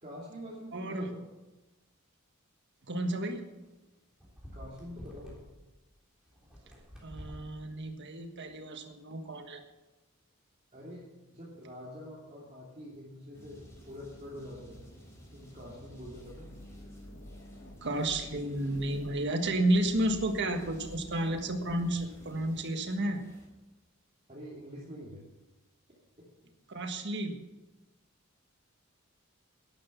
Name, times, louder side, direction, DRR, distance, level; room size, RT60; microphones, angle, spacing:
voice 1, 0.0-1.2 4.5-5.4 10.7-14.8 15.3-16.5 24.3-25.2 26.2-26.3, equal, 30° right, -6 dB, 2.9 m, -46 dB
voice 2, 0.7-1.1 2.8-3.4 7.0-9.6 17.8-23.2 26.7-27.4, right 1 dB, 55° right, 6 dB, 1.5 m, -31 dB
sound 1, 3.2-3.4 4.2-5.4 6.3-7.5 8.2-8.6, equal, 5° right, 3.6 m, -48 dB
sound 2, 13.3-23.5, equal, 15° left, 4.3 m, -54 dB
sound 3, 15.9-22.3, left 1 dB, 55° left, 1.4 m, -50 dB
12.0 x 11.0 x 5.7 m, 1.1 s
head